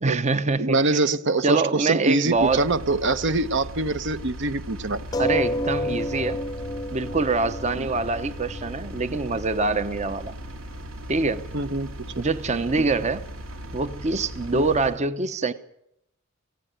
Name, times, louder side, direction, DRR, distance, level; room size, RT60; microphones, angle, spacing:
voice 1, 0.0-1.0 1.4-2.7 5.2-6.4 6.9-10.3 11.1-11.4 12.2-13.2 13.7-15.5, right 3 dB, 35° right, 12 dB, 0.8 m, -25 dB
voice 2, 0.6-5.0 7.8-7.9 11.5-11.9 12.8-12.9 14.5-14.7, right 2 dB, 60° right, 13 dB, 1.0 m, -24 dB
Engine, 2.3-15.0, right 1 dB, 75° right, 3.1 m, -38 dB
sound 1, 5.1-10.1 10.9-11.0 11.3-11.4, left 1 dB, 20° left, 0.7 m, -30 dB
18.0 x 16.0 x 9.1 m, 0.78 s
head